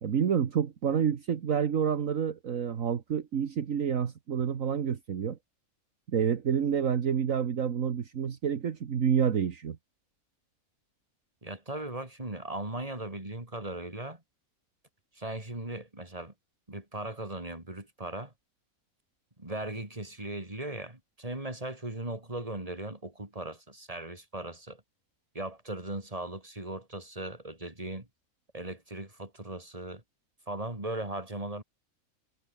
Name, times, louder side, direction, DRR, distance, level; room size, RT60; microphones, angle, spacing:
voice 1, 0.0-5.4 6.1-9.8, right 7 dB, 65° right, 1.6 m, -28 dB
voice 2, 11.4-14.2 15.2-16.3 16.7-18.3 19.4-24.8 25.3-28.1 28.5-30.0 30.5-31.6, right 1 dB, 25° right, 4.1 m, -38 dB
omnidirectional pair, 1.5 m